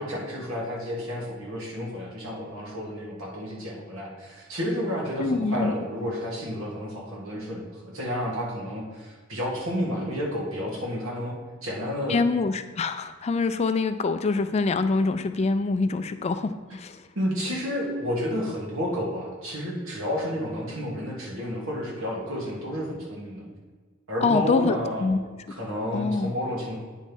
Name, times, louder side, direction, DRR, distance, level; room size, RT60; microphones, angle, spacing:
voice 1, 0.0-11.3 11.6-12.2 17.2-23.5 24.1-25.1 25.6-26.8, equal, 90° right, -3 dB, 1.9 m, -31 dB
voice 2, 5.2-5.7 12.1-17.0 24.2-25.2 25.9-26.3, left 3 dB, 30° left, 10 dB, 0.3 m, -25 dB
9.1 x 3.2 x 5.3 m, 1.4 s
head